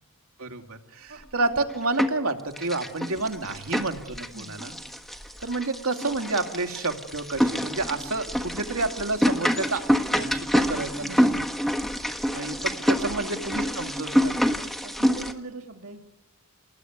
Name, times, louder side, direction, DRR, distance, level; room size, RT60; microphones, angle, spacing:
voice 1, 0.4-4.8 5.4-9.8 10.1-11.2 12.3-14.5, right 3 dB, 80° right, 4 dB, 2.7 m, -30 dB
sound 1, 1.4-2.3 2.6-15.3, equal, ahead, 1.5 m, -27 dB
voice 2, 11.0-11.4 13.0-13.7 14.6-16.0, right 2 dB, 60° right, 3 dB, 2.3 m, -41 dB
29.5 x 20.5 x 9.6 m, 0.98 s
head